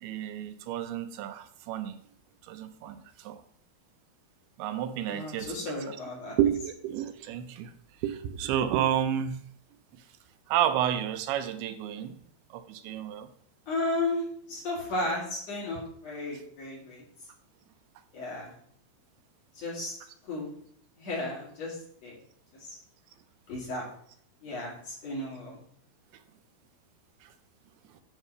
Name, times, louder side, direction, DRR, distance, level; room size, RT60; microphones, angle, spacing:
voice 1, 0.0-2.0 2.4-3.4 4.6-5.5 5.9-6.0 6.4-7.7 8.0-9.4 10.5-12.2 12.5-13.3 27.2-27.3, right 10 dB, 80° right, 9 dB, 2.5 m, -30 dB
voice 2, 5.1-6.4 13.7-17.0 18.1-18.5 19.5-19.9 20.2-20.5 21.0-22.2 22.6-22.8 23.5-23.9 24.4-25.6, left 2 dB, 50° left, -4 dB, 2.9 m, -34 dB
9.0 x 3.6 x 6.5 m, 0.62 s
omnidirectional pair, 4.5 m